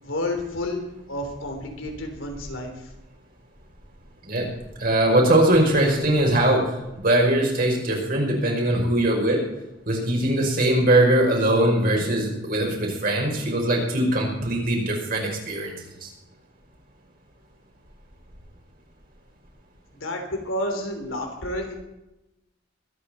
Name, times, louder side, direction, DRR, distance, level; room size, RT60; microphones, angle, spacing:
voice 1, 0.0-0.8 1.1-2.9 19.9-21.7, left 1 dB, 90° left, 3 dB, 3.4 m, -30 dB
voice 2, 4.8-9.4 9.9-15.7 16.0-16.1, right 1 dB, 45° right, 0 dB, 5.1 m, -21 dB
23.0 x 9.5 x 4.3 m, 0.95 s
head